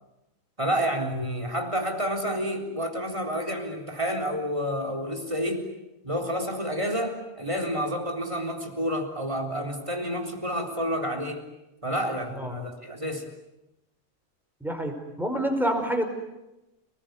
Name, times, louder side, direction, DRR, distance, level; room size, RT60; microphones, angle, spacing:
voice 1, 0.6-5.7 6.0-11.5 11.8-13.3, equal, 20° right, 5 dB, 4.1 m, -29 dB
voice 2, 14.6-16.0, right 1 dB, ahead, 4 dB, 5.1 m, -27 dB
29.5 x 21.0 x 9.6 m, 0.95 s
omnidirectional pair, 1.4 m